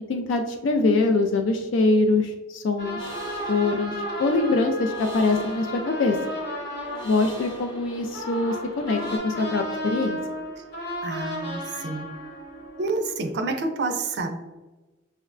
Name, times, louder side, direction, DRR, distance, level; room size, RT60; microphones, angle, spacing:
voice 1, 0.1-3.1 3.5-3.9 4.2-6.2 7.0-10.2, left 3 dB, 80° left, 4 dB, 0.3 m, -23 dB
sound 1, 2.8-13.3, equal, 60° left, 1.0 m, -34 dB
sound 2, 3.0-9.2, equal, 25° left, 0.5 m, -42 dB
voice 2, 11.0-12.1 12.8-14.4, right 3 dB, 60° right, 5 dB, 0.4 m, -28 dB
5.3 x 2.1 x 2.4 m, 1.1 s
head